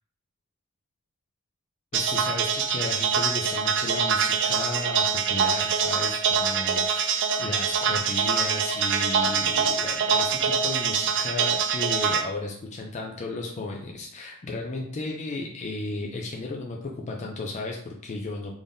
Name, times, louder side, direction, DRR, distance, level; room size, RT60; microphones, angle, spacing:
voice 1, 1.9-18.5, left 2 dB, 35° left, 0 dB, 0.4 m, -34 dB
sound 1, 1.9-12.2, right 6 dB, 55° right, 0.4 m, -24 dB
3.5 x 3.5 x 2.6 m, 0.66 s
head